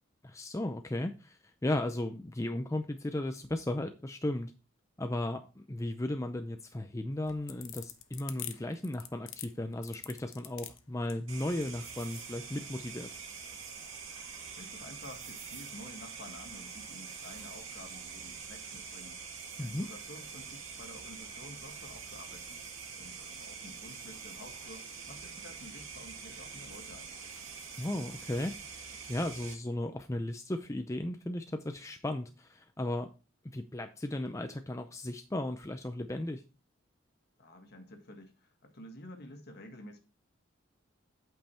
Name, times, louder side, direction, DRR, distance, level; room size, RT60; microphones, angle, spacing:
voice 1, 0.2-4.5 5.0-13.1 19.6-19.9 27.8-28.5 29.1-33.1 33.5-36.4, left 1 dB, 15° left, 0.5 m, -35 dB
sound 1, 7.1-12.3, left 12 dB, 80° left, 0.9 m, -45 dB
sound 2, 11.3-29.5, right 5 dB, 80° right, 2.3 m, -45 dB
voice 2, 14.5-19.2 19.6-22.6 23.0-27.2 37.4-40.0, left 1 dB, 55° left, 1.7 m, -50 dB
8.6 x 5.4 x 4.3 m
head